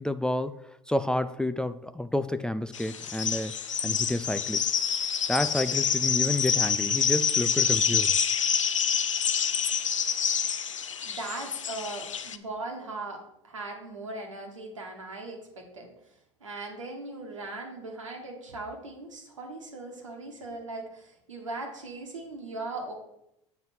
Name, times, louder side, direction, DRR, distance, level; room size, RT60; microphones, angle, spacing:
voice 1, 0.0-4.7 5.3-8.2, left 1 dB, 5° left, 0.3 m, -30 dB
sound 1, 2.7-12.4, left 7 dB, 90° left, 0.4 m, -27 dB
voice 2, 11.0-15.9 16.4-22.9, right 2 dB, 85° right, 1.5 m, -39 dB
7.8 x 4.0 x 6.1 m
hypercardioid pair, 75°, 16 cm